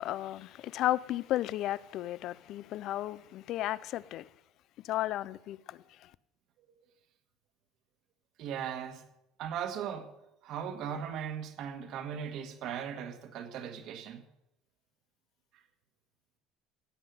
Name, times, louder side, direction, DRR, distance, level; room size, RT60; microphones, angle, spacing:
voice 1, 0.0-4.3 4.8-6.1, left 14 dB, 50° left, 0.4 m, -34 dB
voice 2, 8.4-9.0 9.4-10.1 10.4-14.2 15.5-15.6, right 8 dB, 50° right, 1.6 m, -38 dB
16.0 x 5.7 x 9.3 m
cardioid pair, 160°, 0 cm